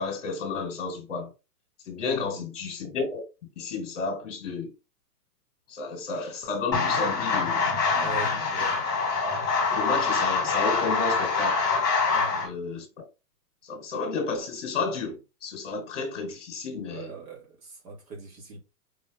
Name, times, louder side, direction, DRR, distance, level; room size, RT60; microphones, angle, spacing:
voice 1, 0.0-1.3 1.9-3.2 3.6-4.7 5.7-7.7 9.7-11.7 12.4-13.0 13.6-17.1, left 4 dB, 50° left, 1.2 m, -32 dB
voice 2, 2.1-2.4 7.9-8.8 12.1-12.5 16.9-18.6, right 4 dB, 60° right, 2.5 m, -41 dB
sound 1, 6.7-12.5, left 4 dB, 10° left, 1.1 m, -25 dB
5.1 x 2.7 x 3.7 m
hypercardioid pair, 180°, 47 cm